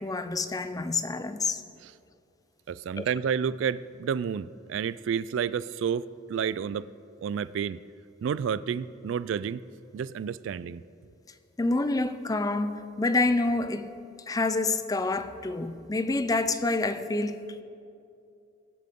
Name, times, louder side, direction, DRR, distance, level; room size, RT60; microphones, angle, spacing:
voice 1, 0.0-1.6 3.0-3.1 11.6-13.9 14.3-17.6, left 3 dB, 20° left, 0.5 m, -27 dB
voice 2, 2.7-6.9 7.2-7.8 8.2-9.6 9.9-10.8, right 7 dB, 70° right, 0.3 m, -30 dB
22.0 x 7.6 x 3.6 m
head